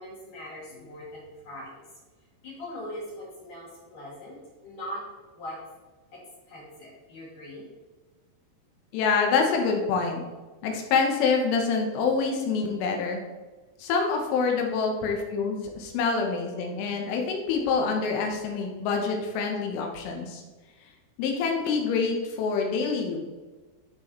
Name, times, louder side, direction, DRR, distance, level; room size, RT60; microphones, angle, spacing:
voice 1, 0.0-1.8 2.4-5.0 5.3-5.6 6.1-7.7, left 1 dB, 55° left, -5 dB, 2.7 m, -41 dB
voice 2, 8.9-10.2 10.6-13.2 13.8-20.4 21.2-23.2, left 5 dB, 80° left, 1 dB, 3.6 m, -26 dB
13.5 x 4.6 x 3.1 m, 1.3 s
omnidirectional pair, 5.7 m